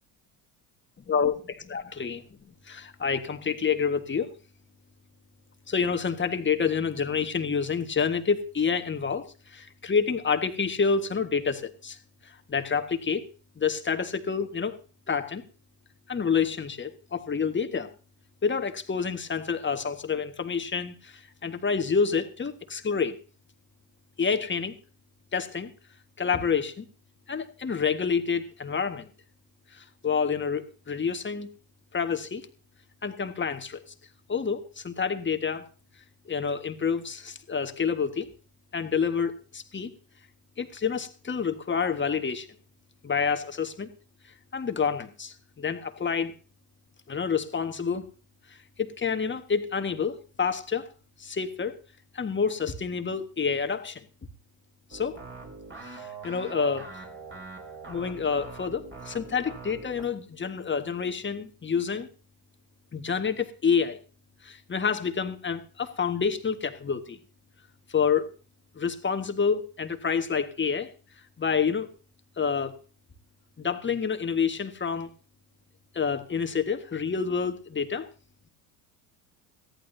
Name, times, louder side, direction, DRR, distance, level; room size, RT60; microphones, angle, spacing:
voice 1, 1.7-2.2 2.7-4.3 5.7-12.0 12.2-13.2 13.6-14.7 15.1-15.4 16.1-17.9 18.4-23.2 24.2-24.7 25.3-25.7 26.2-26.9 27.3-29.1 29.7-31.5 31.9-32.4 33.0-33.8 34.3-35.6 36.2-38.3 38.7-39.9 40.6-42.5 43.0-43.9 44.5-46.3 47.1-48.0 48.8-50.9 51.2-51.7 52.1-54.1 54.9-55.2 55.8-57.0 57.9-62.1 62.9-64.0 64.4-67.2 67.9-68.3 68.7-70.9 71.4-71.9 72.4-72.8 73.6-75.1 75.9-78.1, left 6 dB, 25° left, 1.6 m, -28 dB
sound 1, 54.9-60.1, right 4 dB, 25° right, 4.0 m, -43 dB
18.5 x 14.0 x 2.8 m
hypercardioid pair, 75°, 48 cm